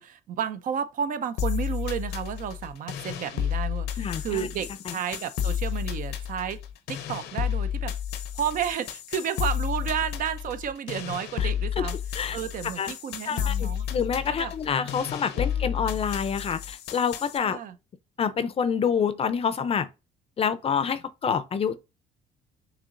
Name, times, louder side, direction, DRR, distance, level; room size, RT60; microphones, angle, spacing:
voice 1, 0.0-6.6 6.9-7.9 8.4-12.0 12.3-13.9 14.3-14.5 15.3-15.8 17.4-17.8, right 8 dB, 55° right, 0.6 m, -32 dB
sound 1, 1.4-17.4, left 9 dB, 80° left, 0.7 m, -31 dB
voice 2, 4.0-4.5 4.9-5.0 11.4-11.5 11.8-11.9 12.2-12.4 12.8-12.9 13.3-17.6 18.2-19.9 20.4-21.8, left 7 dB, 35° left, 0.5 m, -27 dB
6.7 x 3.0 x 2.5 m
cardioid pair, 110°, 17 cm